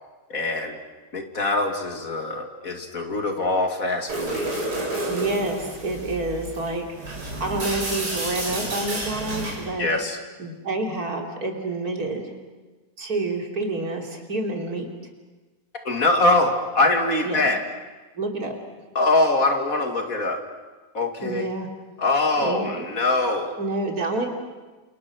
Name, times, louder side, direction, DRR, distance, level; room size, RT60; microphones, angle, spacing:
voice 1, 0.3-0.8 1.1-4.6 9.8-10.2 15.8-17.6 18.9-20.4 20.9-21.5 22.0-23.5, left 2 dB, 60° left, 4 dB, 3.0 m, -23 dB
sound 1, 4.1-9.7, right 1 dB, 90° right, 5.6 m, -30 dB
voice 2, 5.1-9.9 10.4-12.3 13.0-14.9 17.2-17.5 18.2-18.6 21.2-21.7 22.4-22.7 23.6-24.3, right 2 dB, 65° right, 2 dB, 3.8 m, -28 dB
29.5 x 27.5 x 6.3 m, 1.3 s
omnidirectional pair, 1.7 m